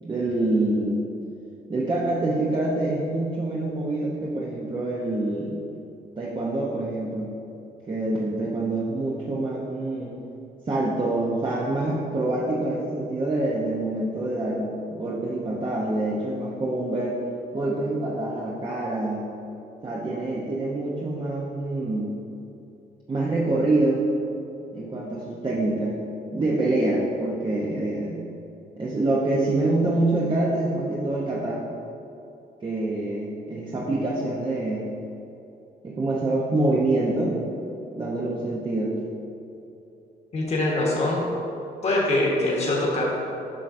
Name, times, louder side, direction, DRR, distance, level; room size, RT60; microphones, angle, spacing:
voice 1, 0.0-1.0 1.7-5.6 6.2-7.3 7.9-10.2 10.6-17.2 17.5-19.3 19.8-22.2 23.1-24.1 24.7-26.0 26.3-28.2 28.8-31.6 32.6-34.9 35.8-37.4 38.0-39.0, right 2 dB, 30° right, -5 dB, 0.8 m, -26 dB
voice 2, 40.3-41.2 41.8-43.0, left 2 dB, 40° left, -4 dB, 1.3 m, -23 dB
7.4 x 5.6 x 2.6 m, 2.8 s
cardioid pair, 100°, 17 cm